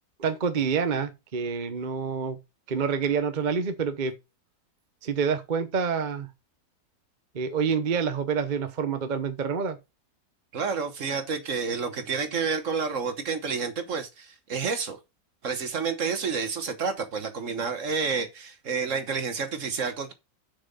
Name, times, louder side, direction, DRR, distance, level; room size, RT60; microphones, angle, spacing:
voice 1, 0.2-2.4 2.7-4.1 5.0-6.3 7.3-9.8, right 6 dB, 35° right, 0.9 m, -27 dB
voice 2, 10.5-15.0 15.4-20.1, right 5 dB, 55° right, 1.4 m, -29 dB
6.8 x 6.0 x 5.4 m
omnidirectional pair, 1.7 m